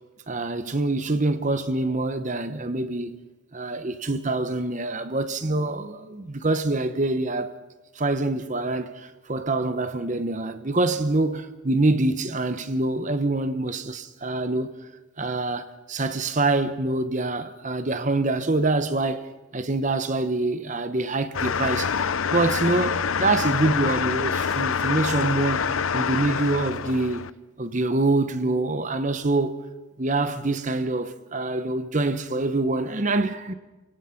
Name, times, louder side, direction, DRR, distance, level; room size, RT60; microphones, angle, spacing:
voice 1, 0.3-3.2 3.5-7.6 7.9-14.7 15.2-19.2 19.5-21.9 22.3-25.6 25.9-29.6 30.0-33.5, right 2 dB, 35° right, 0.9 m, -25 dB
sound 1, 21.3-27.3, left 6 dB, 75° left, 0.6 m, -26 dB
28.5 x 17.5 x 5.9 m
head